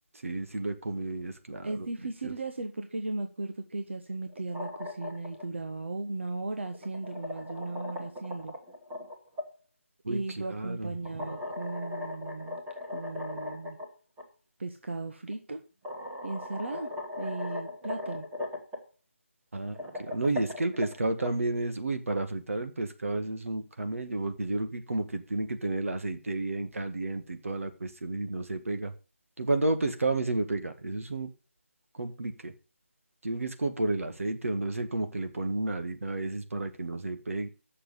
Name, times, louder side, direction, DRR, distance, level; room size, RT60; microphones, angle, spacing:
voice 1, 0.2-1.8 2.2-2.3 10.0-11.3 19.5-28.9 29.4-31.3 31.9-32.5 33.2-37.5, right 2 dB, 80° right, 7 dB, 2.0 m, -31 dB
voice 2, 1.6-8.5 10.1-12.6 12.9-13.8 14.6-15.6 16.2-16.9 17.2-18.2, right 2 dB, 60° right, 5 dB, 1.3 m, -36 dB
sound 1, 4.3-5.4 6.6-9.5 11.0-13.9 14.2-14.3 15.3-15.4 15.8-18.8 19.6-21.3, left 2 dB, 10° right, 1.5 m, -38 dB
7.7 x 6.7 x 8.1 m, 0.34 s
figure-of-eight pair, 175°, 7 cm